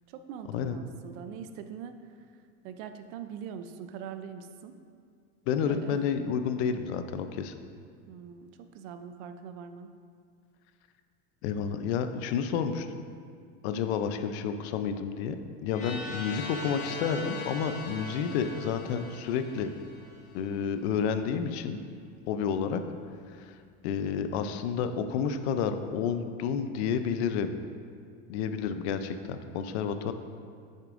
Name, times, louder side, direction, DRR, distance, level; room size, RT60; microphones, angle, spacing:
voice 1, 0.3-1.9 2.6-4.7 5.5-6.0 8.1-8.5 8.7-9.9, right 7 dB, 60° right, 8 dB, 0.5 m, -42 dB
voice 2, 5.5-7.5 11.4-12.9 13.6-15.4 15.6-19.7 20.3-21.8 22.3-22.8 23.4-23.6 23.8-27.5 28.3-30.1, left 7 dB, 85° left, 9 dB, 0.6 m, -30 dB
sound 1, 15.7-20.5, left 2 dB, 25° left, 1.2 m, -40 dB
8.4 x 6.5 x 2.5 m, 2.2 s
cardioid pair, 160°, 32 cm